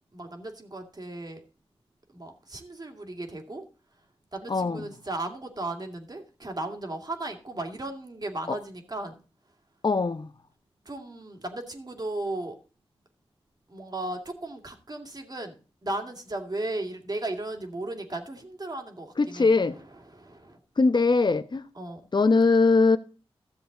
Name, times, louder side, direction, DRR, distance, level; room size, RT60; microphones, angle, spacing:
voice 1, 0.1-1.4 2.1-3.6 4.3-9.2 10.9-12.6 13.7-15.6 15.8-19.5 20.1-20.6 21.8-22.0, right 2 dB, 40° right, 2.2 m, -35 dB
voice 2, 4.5-4.9 8.5-8.6 9.8-10.3 19.2-19.8 20.8-21.7 22.1-23.0, left 3 dB, 45° left, 0.8 m, -21 dB
13.5 x 7.1 x 3.9 m
cardioid pair, 45°, 10 cm